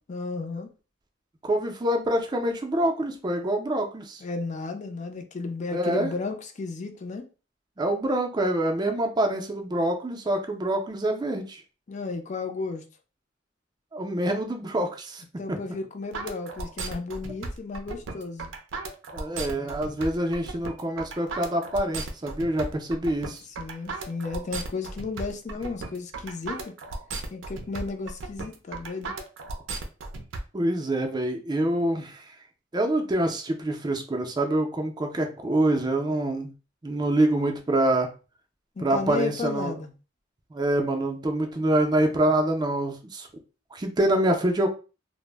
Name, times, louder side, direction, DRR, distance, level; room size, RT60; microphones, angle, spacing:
voice 1, 0.1-0.7 4.2-7.3 11.9-12.8 15.4-18.5 23.6-26.7 27.3-29.1 38.8-39.9, left 3 dB, 40° left, 0.4 m, -33 dB
voice 2, 1.4-4.2 5.7-6.1 7.8-11.6 13.9-15.2 15.5-15.6 19.1-23.4 30.5-32.2 32.7-36.5 36.8-38.1 38.8-39.7 40.5-43.3 43.7-44.7, right 1 dB, 20° right, 0.4 m, -26 dB
sound 1, 16.1-30.4, right 3 dB, 80° right, 0.5 m, -35 dB
2.0 x 2.0 x 3.2 m
head